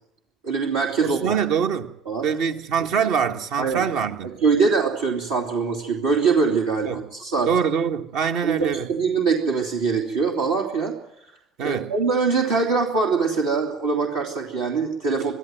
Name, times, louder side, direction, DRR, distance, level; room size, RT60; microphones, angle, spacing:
voice 1, 0.4-1.3 2.0-2.3 3.6-3.8 4.4-7.5 8.4-10.9 11.6-15.3, right 5 dB, 75° right, 3.1 m, -23 dB
voice 2, 1.0-2.0 2.2-4.3 6.8-7.0 7.4-8.9 11.6-11.9, right 7 dB, 60° right, 1.6 m, -24 dB
24.5 x 14.0 x 9.3 m
figure-of-eight pair, 60°, 0 cm